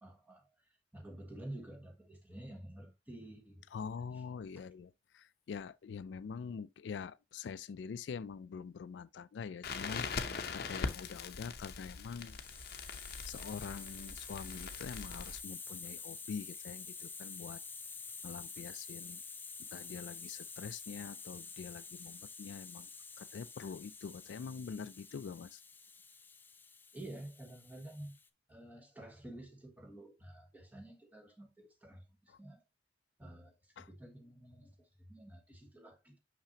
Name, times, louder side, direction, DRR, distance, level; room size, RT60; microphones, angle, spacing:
voice 1, 0.0-0.5 0.9-3.7 4.1-4.2 4.6-4.7 26.9-28.1 28.5-32.6 33.2-36.2, right 1 dB, 10° right, 1.4 m, -50 dB
voice 2, 3.7-12.4 13.3-17.6 18.2-19.2 19.6-22.9 23.2-25.6 33.8-33.9, left 6 dB, 90° left, 0.3 m, -45 dB
Crackle, 9.6-15.4, left 4 dB, 60° left, 0.7 m, -42 dB
Hiss, 11.7-28.3, left 5 dB, 10° left, 0.4 m, -49 dB
5.9 x 5.7 x 2.8 m
head